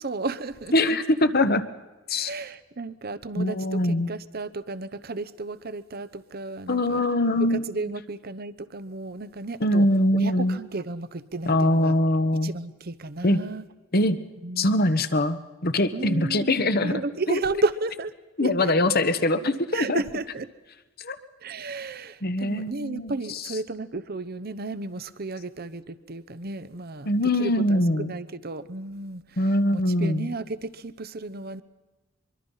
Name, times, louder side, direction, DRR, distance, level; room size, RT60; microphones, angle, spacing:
voice 1, 0.0-1.0 2.1-7.0 7.4-9.9 10.1-12.0 12.4-13.6 14.4-14.8 15.9-16.6 16.8-18.1 18.4-18.7 19.7-20.5 21.4-27.1 27.4-29.4 29.7-31.6, right 3 dB, 50° right, 14 dB, 1.0 m, -33 dB
voice 2, 0.7-1.6 2.1-2.3 3.4-4.1 6.7-7.7 9.6-10.6 11.5-12.5 13.2-13.4 13.9-14.2 14.6-17.0 17.3-17.4 18.4-20.0 21.0-21.2 22.2-23.5 27.0-28.1 29.4-30.3, left 1 dB, 50° left, 11 dB, 1.3 m, -23 dB
24.0 x 23.5 x 5.7 m, 1.2 s
head